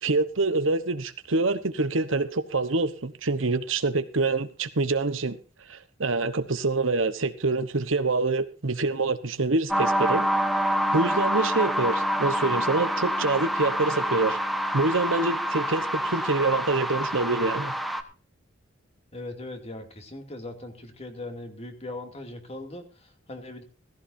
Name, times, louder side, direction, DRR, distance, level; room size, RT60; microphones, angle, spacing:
voice 1, 0.0-5.4 5.7-10.2 10.9-14.4 14.7-17.7, right 3 dB, 70° right, 1.2 m, -26 dB
sound 1, 9.7-18.0, equal, ahead, 1.2 m, -27 dB
voice 2, 19.1-22.8 23.3-23.6, left 2 dB, 35° left, 2.5 m, -39 dB
17.0 x 15.0 x 2.7 m
head